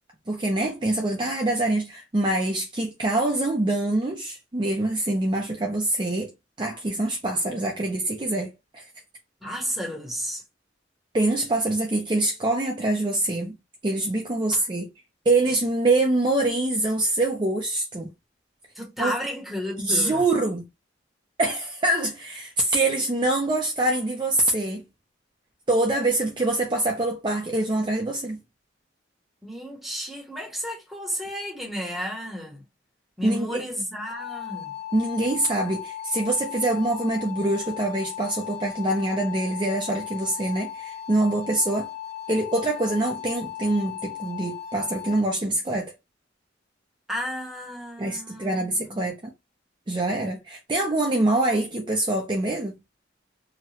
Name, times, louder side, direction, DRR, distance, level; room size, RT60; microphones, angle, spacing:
voice 1, 0.3-6.3 6.6-8.9 9.5-9.6 11.1-13.5 13.8-14.9 15.3-18.1 19.0-19.1 19.8-20.6 21.4-24.8 25.7-28.4 33.2-33.6 34.9-41.9 42.3-45.9 48.0-49.3 49.9-52.8, right 2 dB, 25° right, 0.5 m, -25 dB
voice 2, 9.4-10.4 14.5-14.6 18.7-20.2 29.4-32.6 33.2-34.8 47.1-49.0, equal, ahead, 0.8 m, -32 dB
sound 1, 34.0-45.2, left 11 dB, 35° left, 0.8 m, -37 dB
2.8 x 2.2 x 2.8 m
head